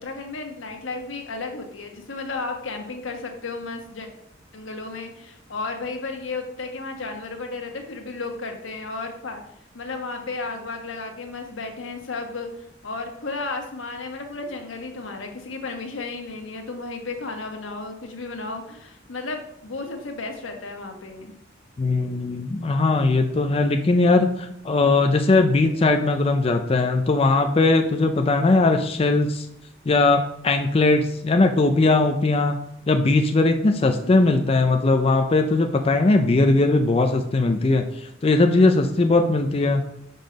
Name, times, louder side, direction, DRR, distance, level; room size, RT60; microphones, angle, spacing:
voice 1, 0.0-4.1 4.5-9.4 9.7-21.3 34.0-34.5, left 3 dB, 85° left, 4 dB, 1.3 m, -33 dB
voice 2, 21.8-29.5 29.8-32.5 32.9-39.8, left 3 dB, 30° left, 6 dB, 0.4 m, -19 dB
5.8 x 5.3 x 5.1 m, 0.76 s
head